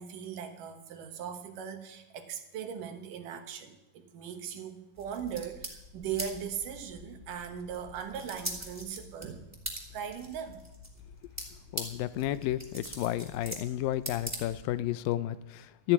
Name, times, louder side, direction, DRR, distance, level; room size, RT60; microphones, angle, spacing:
voice 1, 0.0-9.5 9.9-10.6, right 8 dB, 70° right, 6 dB, 2.7 m, -39 dB
sound 1, 5.0-14.9, equal, 5° right, 2.3 m, -43 dB
voice 2, 11.7-15.9, left 14 dB, 85° left, 14 dB, 2.3 m, -31 dB
13.0 x 9.2 x 9.3 m, 0.93 s
omnidirectional pair, 4.1 m